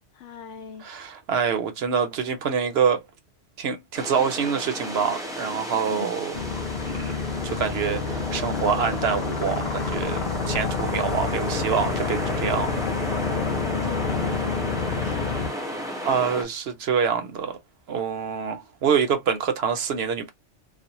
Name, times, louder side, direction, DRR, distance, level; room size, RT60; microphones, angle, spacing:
voice 1, 0.1-0.9 5.9-6.2 13.8-15.5, left 5 dB, 75° left, 1.0 m, -40 dB
voice 2, 0.8-3.0 3.6-6.3 6.9-7.2 7.4-12.8 16.0-17.6 17.9-20.3, right 7 dB, 65° right, 0.7 m, -26 dB
sound 1, 3.9-16.4, equal, 5° right, 0.5 m, -33 dB
sound 2, 6.3-15.5, left 5 dB, 50° left, 0.6 m, -29 dB
2.5 x 2.0 x 2.8 m
omnidirectional pair, 1.3 m